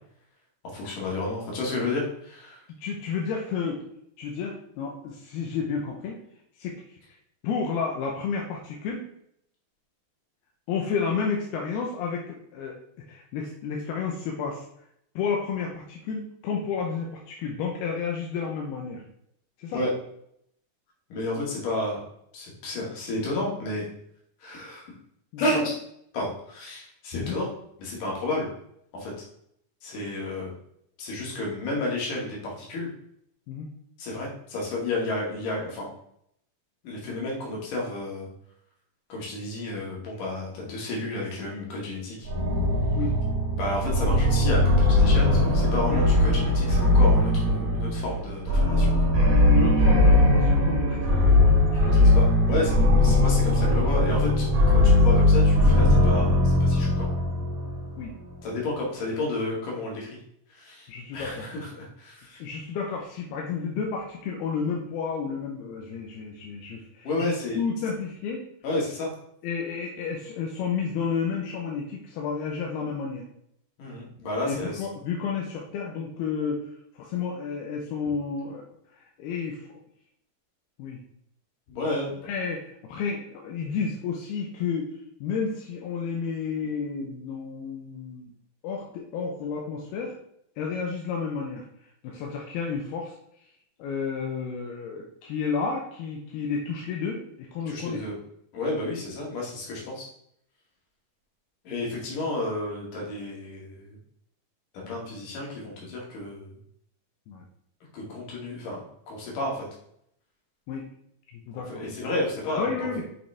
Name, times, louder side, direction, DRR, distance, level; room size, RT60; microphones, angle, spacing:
voice 1, 0.7-2.6 19.7-19.9 21.1-22.0 22.3-23.9 24.4-24.9 25.4-25.8 26.1-27.5 27.8-28.5 28.9-29.1 29.8-30.5 31.0-32.9 34.0-35.9 36.8-38.3 39.1-42.3 43.6-49.1 51.8-57.1 58.4-60.2 60.5-62.4 67.0-67.6 68.6-69.1 73.8-74.8 81.7-82.2 97.7-98.2 98.5-100.1 101.7-104.0 104.9-106.6 107.9-109.7 111.5-113.0, left 2 dB, 60° left, -3 dB, 3.6 m, -31 dB
voice 2, 2.8-3.8 4.2-6.2 6.6-7.0 7.4-9.0 10.7-12.8 13.1-14.6 15.2-19.0 19.6-19.8 25.3-25.4 27.1-27.4 33.5-33.7 37.0-37.2 43.0-43.1 45.9-46.0 49.5-52.0 58.0-58.1 60.9-61.5 62.4-68.4 69.4-73.2 74.4-76.6 77.0-78.6 79.2-79.7 80.8-81.0 82.2-88.3 88.6-90.2 90.6-91.6 92.0-93.2 93.8-98.0 101.9-102.0 104.8-105.0 107.3-107.4 110.7-110.9 111.3-111.8 112.4-113.0, left 5 dB, 80° left, 0 dB, 2.9 m, -31 dB
sound 1, 42.2-57.9, left 1 dB, 85° right, 0.7 m, -20 dB
8.3 x 5.5 x 3.5 m, 0.72 s
omnidirectional pair, 4.5 m